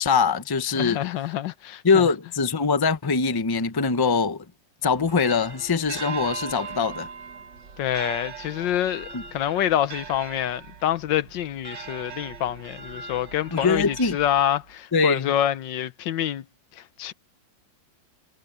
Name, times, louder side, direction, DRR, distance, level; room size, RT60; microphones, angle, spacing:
voice 1, 0.0-1.0 1.8-4.4 4.8-7.1 9.1-9.2 13.5-14.2 14.9-15.3, left 5 dB, 20° left, 0.6 m, -22 dB
voice 2, 0.7-2.1 7.8-16.4 16.7-17.1, left 11 dB, 90° left, 1.6 m, -27 dB
sound 1, 4.8-14.7, right 5 dB, 80° right, 2.4 m, -39 dB
omnidirectional pair, 1.9 m